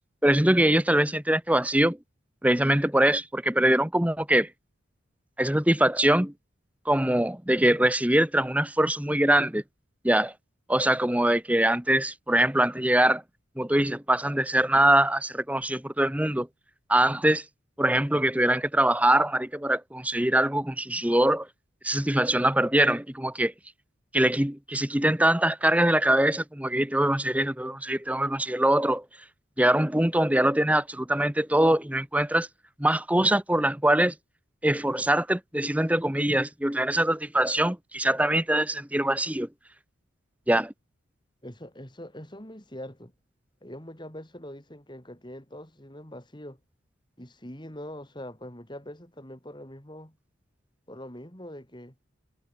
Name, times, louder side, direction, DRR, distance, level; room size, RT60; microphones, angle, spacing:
voice 1, 0.2-2.0 2.4-4.5 5.4-6.3 6.8-9.6 10.0-10.3 10.7-13.2 13.6-16.5 16.9-17.4 17.8-21.5 21.8-23.5 24.1-29.0 29.6-32.5 32.8-34.1 34.6-39.5 40.5-40.7, right 1 dB, 5° right, 1.0 m, -23 dB
voice 2, 41.4-43.1 43.6-46.6 47.2-50.2 50.9-51.9, left 1 dB, 20° left, 4.1 m, -43 dB
head